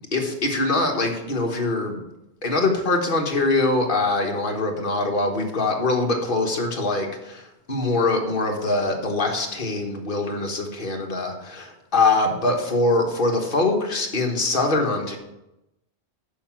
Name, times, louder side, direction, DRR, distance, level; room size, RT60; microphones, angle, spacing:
voice 1, 0.1-2.0 2.4-15.2, left 2 dB, 50° left, 2 dB, 1.6 m, -23 dB
6.9 x 5.6 x 7.3 m, 0.90 s
omnidirectional pair, 1.1 m